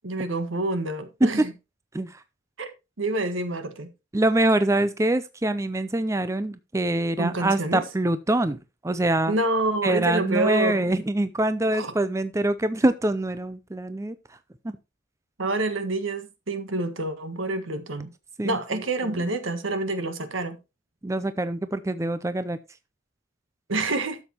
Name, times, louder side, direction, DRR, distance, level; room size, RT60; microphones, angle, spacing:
voice 1, 0.0-1.5 2.6-2.7 3.0-3.9 7.2-7.8 9.3-10.9 11.8-11.9 15.4-18.1 18.4-20.6 23.7-24.2, right 2 dB, 80° right, 1.7 m, -27 dB
voice 2, 4.1-9.3 9.8-14.2 18.4-19.3 21.0-22.6, right 1 dB, 15° right, 0.4 m, -25 dB
12.0 x 7.2 x 3.0 m
head